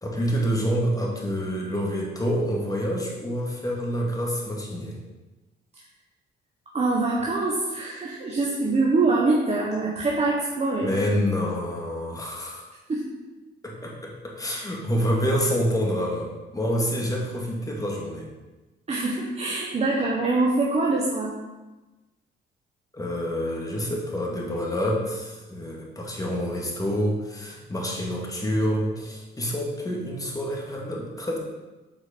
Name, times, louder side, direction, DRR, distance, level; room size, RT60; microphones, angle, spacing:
voice 1, 0.0-5.0 10.8-12.7 13.6-18.3 22.9-31.4, equal, 15° left, -2 dB, 2.1 m, -27 dB
voice 2, 6.7-10.9 12.9-13.1 18.9-21.3, right 3 dB, 35° right, -3 dB, 1.2 m, -24 dB
7.5 x 4.7 x 5.2 m, 1.1 s
cardioid pair, 90°, 20 cm